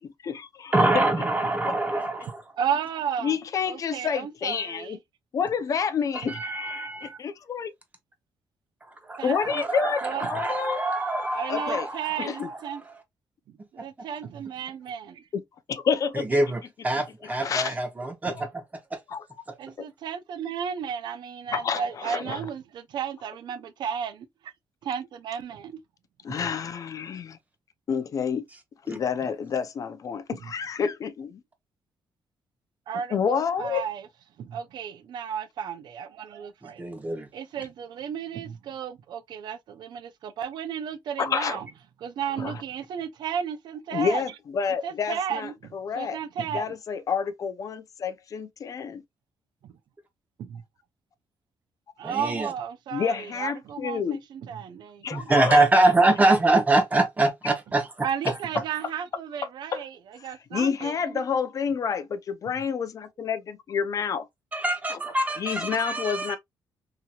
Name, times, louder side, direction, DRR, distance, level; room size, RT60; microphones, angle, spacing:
voice 1, 0.0-1.1 1.6-2.0 3.2-5.0 5.3-7.7 9.2-10.8 11.5-11.9 12.2-12.5 15.3-15.4 15.7-16.4 17.2-17.7 18.3-18.4 19.1-19.2 19.8-19.9 21.5-22.4 26.2-27.4 27.9-28.4 28.9-31.4 33.1-33.8 41.2-41.6 42.4-42.6 43.9-46.2 46.5-49.0 52.9-54.2 55.0-55.6 59.7-59.8 60.2-64.3 64.9-65.0 65.4-66.4, left 6 dB, 50° left, 0.4 m, -29 dB
voice 2, 0.7-2.4 6.3-7.2 9.0-12.9 13.8-13.9 16.1-18.6 18.9-19.0 28.9-29.0 36.6-37.3 52.0-52.5 55.1-57.9 64.5-66.4, right 2 dB, 20° right, 0.8 m, -25 dB
voice 3, 2.6-3.4 3.7-5.0 6.2-6.3 9.2-9.6 10.0-10.3 11.3-12.8 13.7-15.2 18.3-18.4 19.6-24.3 24.8-25.8 26.3-26.4 30.3-30.4 32.9-34.1 34.4-36.8 37.3-41.7 42.0-44.2 44.8-46.6 50.4-50.6 52.0-54.0 54.3-55.3 58.0-61.2, right 8 dB, 75° right, 0.5 m, -33 dB
2.9 x 2.8 x 2.3 m
cardioid pair, 120°, 8 cm